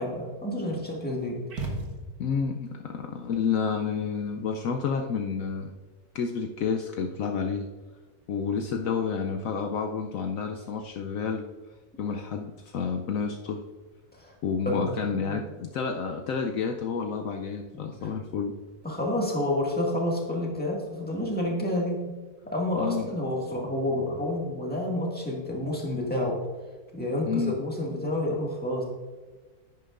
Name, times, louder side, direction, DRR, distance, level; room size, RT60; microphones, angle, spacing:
voice 1, 0.0-1.4 14.1-14.3 14.7-15.4 17.7-18.1 18.8-22.0 22.5-26.4 26.9-28.8, left 1 dB, 5° left, -2 dB, 1.8 m, -29 dB
sound 1, 1.5-2.5, right 2 dB, 80° right, 1.8 m, -35 dB
voice 2, 2.2-5.7 6.1-7.7 8.3-11.5 12.0-13.6 14.4-18.5 22.8-23.1 27.3-27.5, left 6 dB, 70° left, 4 dB, 0.9 m, -30 dB
10.5 x 9.3 x 2.5 m, 1.3 s
omnidirectional pair, 1.6 m